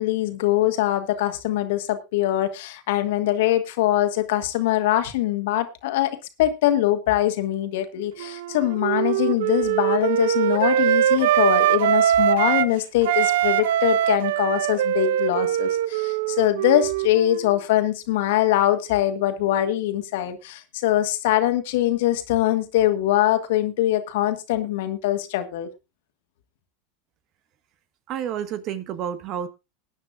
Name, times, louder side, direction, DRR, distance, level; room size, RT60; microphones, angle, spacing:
voice 1, 0.0-25.7, left 13 dB, 65° left, 1.7 m, -23 dB
Wind instrument woodwind instrument, 8.2-12.7 13.0-17.5, right 11 dB, 70° right, 0.5 m, -22 dB
voice 2, 28.1-29.5, right 9 dB, 50° right, 1.5 m, -30 dB
20.5 x 9.5 x 2.5 m
hypercardioid pair, 90°, 0 cm